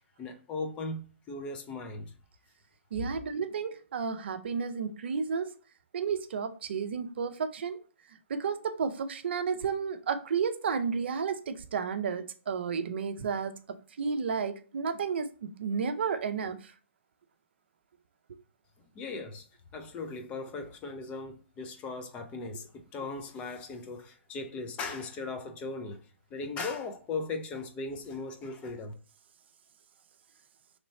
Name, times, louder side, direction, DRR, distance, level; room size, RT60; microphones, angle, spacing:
voice 1, 0.2-1.0 1.3-2.1 19.0-19.4 19.7-26.0 26.3-28.9, left 3 dB, 20° left, 0.4 m, -38 dB
voice 2, 2.9-5.5 5.9-7.8 8.3-16.7, right 6 dB, 60° right, 0.5 m, -32 dB
3.2 x 3.0 x 4.1 m
hypercardioid pair, 140°, 7 cm